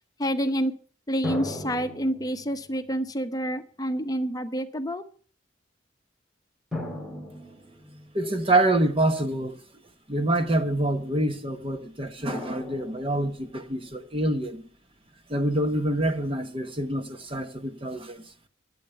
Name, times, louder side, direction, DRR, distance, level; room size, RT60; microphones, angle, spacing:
voice 1, 0.2-0.7 1.1-5.1, equal, 20° left, 0.9 m, -28 dB
sound 1, 1.2-3.0 3.9-4.0 6.7-8.4 12.3-13.6, left 1 dB, ahead, 2.7 m, -37 dB
voice 2, 8.1-9.6 10.1-14.6 15.3-18.2, right 1 dB, 30° right, 1.0 m, -26 dB
12.5 x 8.0 x 6.9 m
head